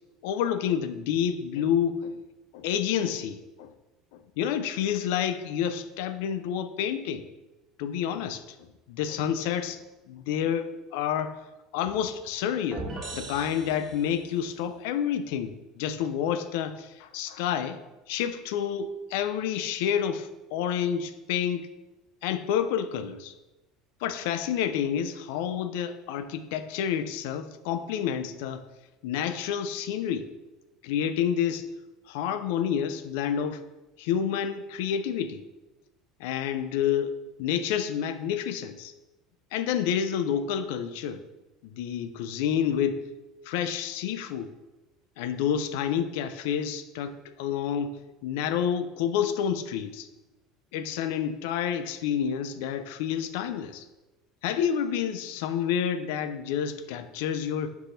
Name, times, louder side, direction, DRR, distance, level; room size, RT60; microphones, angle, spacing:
voice 1, 0.2-2.2 2.5-3.7 4.1-7.3 7.8-11.4 11.7-12.9 13.1-17.8 18.1-21.7 22.2-23.3 24.0-28.6 29.0-30.3 30.8-31.7 32.1-33.6 34.0-35.4 36.2-38.9 39.5-41.2 41.6-43.0 43.5-44.5 45.2-50.1 50.7-53.8 54.4-57.7, left 8 dB, 75° left, 11 dB, 0.3 m, -29 dB
sound 1, 12.7-14.4, right 2 dB, 45° right, 1.2 m, -39 dB
4.6 x 2.6 x 3.9 m, 1.1 s
hypercardioid pair, 80°, 0 cm